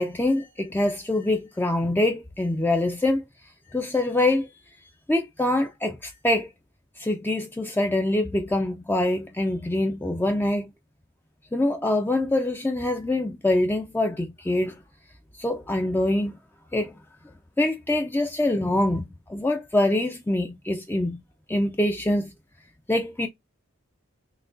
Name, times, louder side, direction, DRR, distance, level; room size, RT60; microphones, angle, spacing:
voice 1, 0.0-3.2 3.7-4.6 5.1-6.5 7.0-10.7 11.5-14.8 15.4-16.4 16.7-16.9 17.6-21.2 21.5-22.3 22.9-23.3, left 1 dB, 10° left, 0.4 m, -24 dB
5.9 x 2.3 x 2.4 m
head